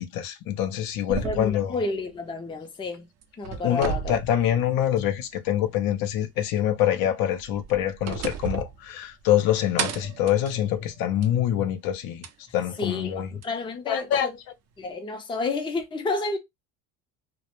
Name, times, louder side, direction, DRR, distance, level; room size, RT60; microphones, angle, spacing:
voice 1, 0.0-1.7 3.6-12.2 12.5-13.3 13.9-14.3, left 11 dB, 65° left, 0.6 m, -25 dB
sound 1, 1.1-2.9 3.2-5.2 5.6-5.7 7.3-9.4 9.8-11.4 12.2-12.3 13.4-13.5, right 7 dB, 45° right, 0.5 m, -35 dB
voice 2, 1.2-3.1 3.4-4.2 4.5-4.6 12.8-14.4 14.8-16.4, left 3 dB, 15° left, 0.5 m, -31 dB
2.1 x 2.0 x 2.9 m
cardioid pair, 110°, 38 cm